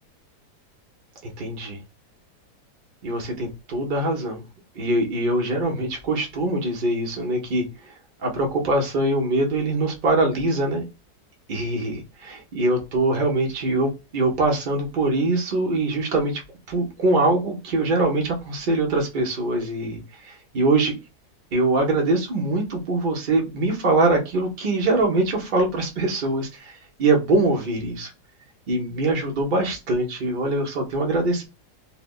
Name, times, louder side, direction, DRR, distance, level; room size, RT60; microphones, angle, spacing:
voice 1, 1.2-1.8 3.0-4.4 4.7-7.9 8.2-10.8 11.5-16.4 16.7-20.9 21.5-28.1 28.7-31.5, right 2 dB, 50° right, 1 dB, 0.6 m, -23 dB
3.2 x 2.1 x 2.3 m, 0.26 s
omnidirectional pair, 1.8 m